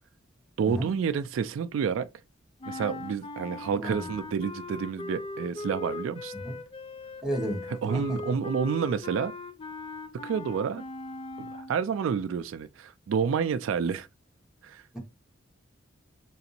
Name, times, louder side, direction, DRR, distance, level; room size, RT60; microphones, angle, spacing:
voice 1, 0.6-2.1 2.7-6.3 7.8-9.3 10.2-10.8 11.4-14.1 14.6-14.8, right 6 dB, 70° right, 0.3 m, -29 dB
sound 1, 2.6-11.8, left 2 dB, 25° left, 0.4 m, -39 dB
voice 2, 3.7-4.1 6.4-6.6 7.2-7.6 7.9-8.2, equal, 5° right, 1.0 m, -32 dB
3.9 x 2.5 x 2.7 m
head